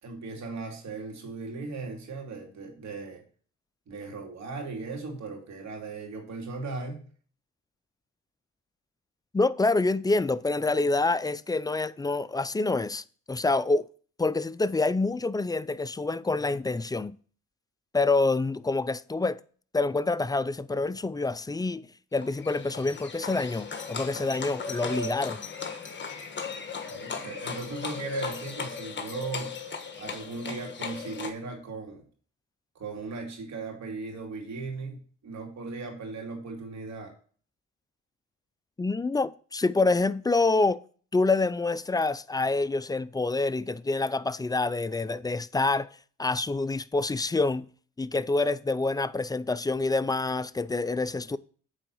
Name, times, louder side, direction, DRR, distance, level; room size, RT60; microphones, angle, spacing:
voice 1, 0.0-3.2 3.9-7.0 26.9-29.6 30.0-32.0 32.7-37.1, right 3 dB, 60° right, 2.9 m, -37 dB
voice 2, 9.3-13.9 14.2-17.1 17.9-19.4 19.7-25.4 38.8-40.8 41.1-45.9 46.2-47.7 48.0-51.4, left 3 dB, 15° left, 0.3 m, -27 dB
Livestock farm animals working animals, 22.2-31.3, left 5 dB, 35° left, 1.4 m, -37 dB
9.0 x 3.9 x 6.3 m
cardioid pair, 90°, 30 cm